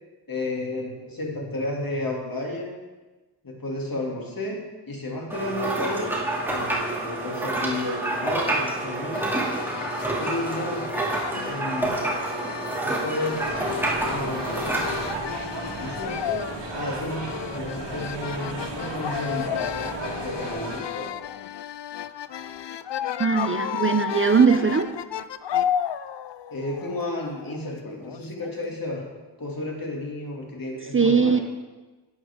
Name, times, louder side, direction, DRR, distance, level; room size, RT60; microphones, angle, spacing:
voice 1, 0.3-2.8 3.4-6.2 6.5-9.2 10.2-10.9 11.5-12.0 12.8-13.6 14.1-14.7 15.6-19.7 20.2-21.1 26.5-29.1 29.4-31.4, left 2 dB, 50° left, -1 dB, 2.5 m, -32 dB
sound 1, 5.3-15.2, right 2 dB, 5° right, 2.4 m, -28 dB
sound 2, 9.1-28.8, left 10 dB, 75° left, 0.5 m, -33 dB
sound 3, 13.3-20.8, right 3 dB, 85° right, 1.7 m, -34 dB
voice 2, 23.2-24.9 30.9-31.4, right 5 dB, 30° right, 8 dB, 0.5 m, -20 dB
11.5 x 9.7 x 3.6 m, 1.2 s
wide cardioid pair, 75°, 43 cm